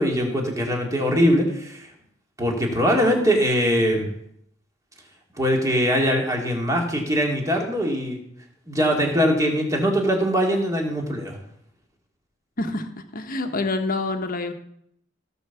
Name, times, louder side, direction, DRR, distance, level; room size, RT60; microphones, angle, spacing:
voice 1, 0.0-1.9 2.4-4.1 5.4-8.2 8.7-11.4, equal, 15° right, 1 dB, 2.3 m, -22 dB
voice 2, 12.6-14.5, left 2 dB, 45° left, 7 dB, 1.2 m, -27 dB
16.0 x 5.4 x 7.0 m, 0.72 s
head